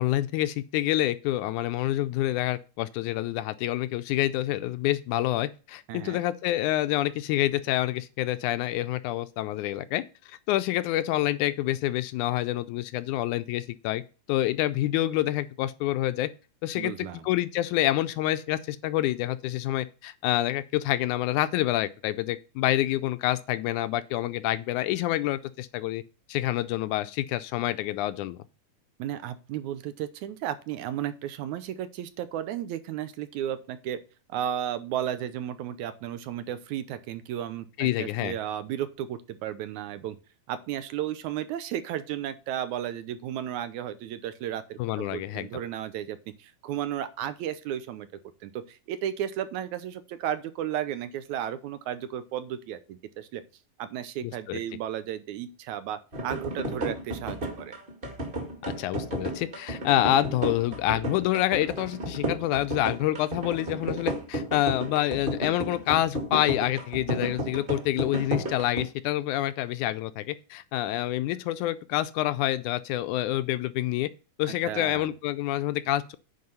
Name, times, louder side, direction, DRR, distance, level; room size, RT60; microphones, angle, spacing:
voice 1, 0.0-14.0 14.3-16.3 16.6-26.0 26.3-28.4 37.8-38.4 44.8-45.5 54.2-54.6 58.6-74.1 74.4-76.2, left 14 dB, 80° left, 1.9 m, -27 dB
voice 2, 5.9-6.2 16.8-17.2 29.0-34.0 34.3-40.2 40.5-48.1 48.4-53.4 53.8-57.7 74.6-75.1, right 10 dB, 75° right, 2.0 m, -34 dB
sound 1, 56.1-68.8, right 1 dB, 20° right, 1.5 m, -33 dB
9.6 x 4.5 x 5.4 m
omnidirectional pair, 3.6 m